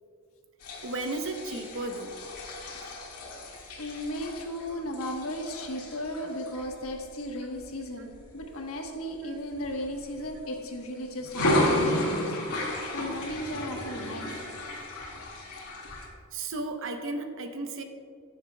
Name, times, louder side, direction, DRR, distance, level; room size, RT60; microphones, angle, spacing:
sound 1, 0.6-8.4 8.9-9.2 9.5-10.7 11.2-16.1, left 1 dB, 90° left, 2.0 m, -33 dB
voice 1, 0.8-2.1 16.3-17.8, right 2 dB, 60° right, 5 dB, 0.8 m, -34 dB
voice 2, 3.8-12.4 12.9-14.3, equal, 70° left, 2 dB, 1.2 m, -36 dB
18.0 x 7.3 x 2.3 m, 2.3 s
head